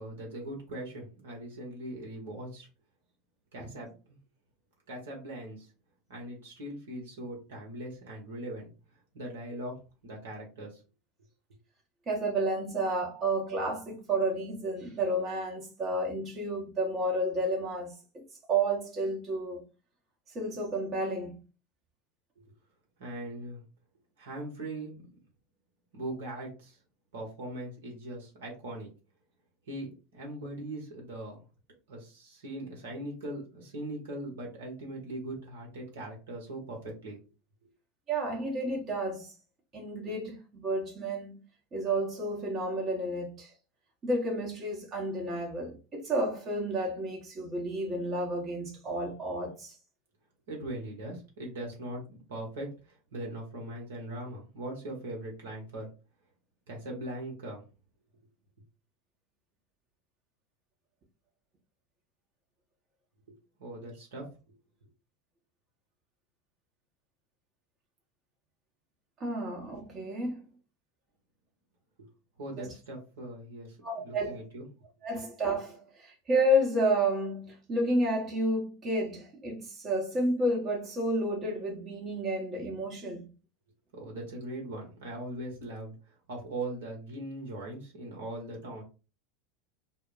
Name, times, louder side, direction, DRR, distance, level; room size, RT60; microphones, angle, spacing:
voice 1, 0.0-2.7 3.5-4.2 4.9-5.7 6.1-8.7 9.1-9.8 10.0-10.8 22.4-22.5 23.0-23.6 24.2-25.0 25.9-26.8 27.1-28.9 29.7-31.5 31.9-37.2 50.5-55.9 56.7-57.6 63.3-64.3 72.0-72.1 72.4-74.7 83.9-88.8, right 1 dB, 65° right, 1.1 m, -40 dB
voice 2, 12.1-18.2 18.5-19.6 20.3-21.4 38.1-39.3 39.7-41.4 41.7-43.5 44.0-49.8 69.2-70.4 72.5-72.7 73.8-74.4 75.0-83.3, right 1 dB, 30° right, 0.9 m, -31 dB
2.2 x 2.1 x 3.8 m
figure-of-eight pair, 80°, 0 cm